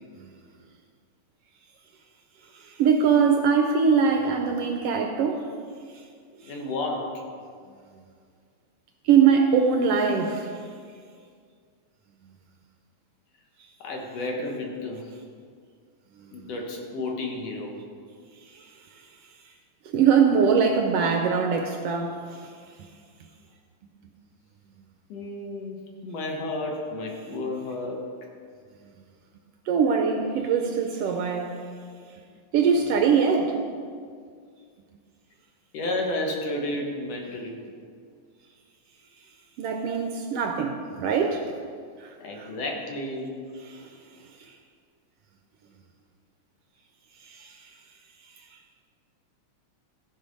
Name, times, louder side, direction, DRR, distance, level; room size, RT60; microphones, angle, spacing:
voice 1, 2.5-5.5 9.0-10.6 16.3-16.4 18.5-18.6 19.9-22.5 29.7-31.6 32.5-33.6 39.6-41.5 42.0-42.5 43.7-43.9 47.2-47.6, right 6 dB, 80° right, 3 dB, 1.4 m, -22 dB
voice 2, 6.4-7.2 13.8-15.1 16.3-17.7 25.1-25.8 26.0-28.0 35.7-37.6 42.2-43.3, left 2 dB, 65° left, 0 dB, 2.3 m, -31 dB
14.5 x 5.2 x 5.3 m, 2.1 s
omnidirectional pair, 3.3 m